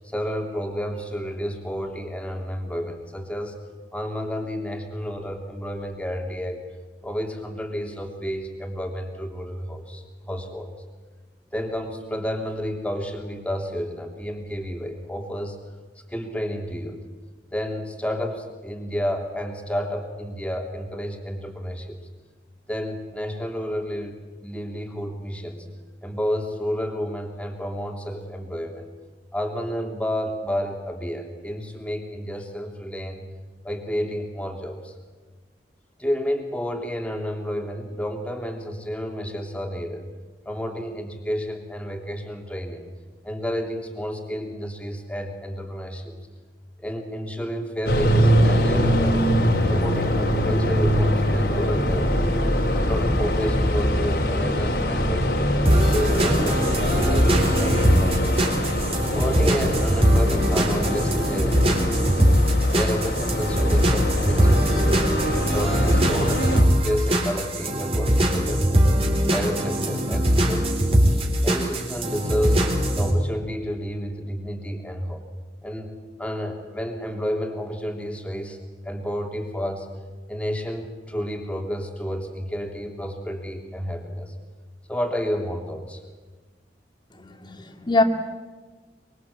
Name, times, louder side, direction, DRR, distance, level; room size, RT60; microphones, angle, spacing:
voice 1, 0.0-3.6 3.9-6.7 7.0-10.7 11.5-15.6 16.1-17.0 17.5-22.0 22.7-25.6 26.0-28.9 29.3-33.2 33.6-34.9 36.0-40.1 40.4-42.9 43.2-46.2 46.8-49.2 49.7-52.3 52.7-55.5 55.8-58.5 59.1-62.3 62.7-65.1 65.4-68.9 69.3-75.2 75.6-75.9 76.2-78.6 78.8-79.9 80.3-84.3 84.9-86.0, equal, 5° left, 3 dB, 3.2 m, -30 dB
sound 1, 47.9-66.6, equal, 65° left, 3.7 m, -23 dB
sound 2, 55.7-73.1, equal, 35° right, 4.0 m, -21 dB
voice 2, 87.2-88.0, left 2 dB, 25° left, 6 dB, 2.3 m, -23 dB
24.5 x 23.5 x 8.5 m, 1.3 s
head